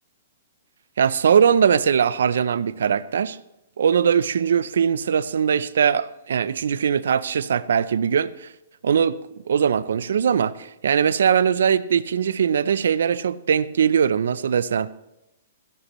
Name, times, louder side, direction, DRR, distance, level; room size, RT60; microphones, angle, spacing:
voice 1, 1.0-3.4 3.8-8.5 8.8-9.2 9.5-14.9, right 7 dB, 80° right, 18 dB, 0.5 m, -21 dB
15.5 x 13.0 x 3.1 m, 0.90 s
hypercardioid pair, 160°, 0 cm